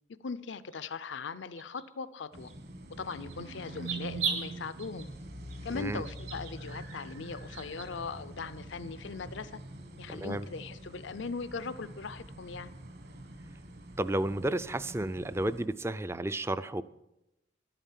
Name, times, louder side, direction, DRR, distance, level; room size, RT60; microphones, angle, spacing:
voice 1, 0.2-2.5 3.0-5.1 5.6-9.6 10.0-12.7, left 4 dB, 70° left, 14 dB, 0.6 m, -39 dB
sound 1, 0.7-0.8 1.6-1.8 2.5-2.6 3.1-3.3 3.7-4.4 4.8-5.1 5.5-5.6 6.0-6.5 6.9-7.0 7.5-7.9, right 6 dB, 70° right, 2.5 m, -36 dB
sound 2, 2.3-15.7, right 1 dB, 55° right, 1.6 m, -45 dB
voice 2, 10.1-10.5 14.0-16.8, right 1 dB, 15° right, 14 dB, 0.4 m, -32 dB
12.0 x 9.0 x 7.4 m, 0.90 s
head